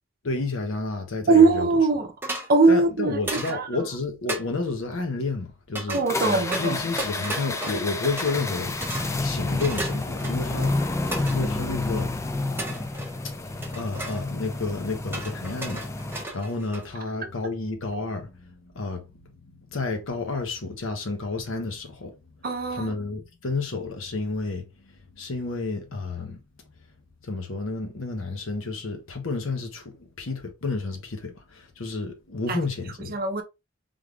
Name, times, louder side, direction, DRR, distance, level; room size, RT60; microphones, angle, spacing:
voice 1, 0.2-1.7 2.7-8.8 9.2-10.8 11.3-12.2 13.7-22.2 22.7-26.4 27.2-33.1, left 3 dB, 70° left, 0.9 m, -31 dB
voice 2, 1.3-2.1 2.5-3.9 5.9-6.8 17.2-17.3 22.4-22.9 32.5-32.6 33.0-33.4, right 3 dB, 45° right, 0.7 m, -21 dB
sound 1, 2.2-2.5 3.3-3.6 4.3-4.4 5.7-6.0 6.5-8.5 8.8-9.1 9.6-10.5 11.1-11.4 12.6-13.3 13.6-14.2 15.1-17.0, right 2 dB, 10° right, 0.8 m, -34 dB
sound 2, 6.1-16.2, left 2 dB, 15° left, 0.3 m, -29 dB
3.6 x 3.4 x 2.4 m
head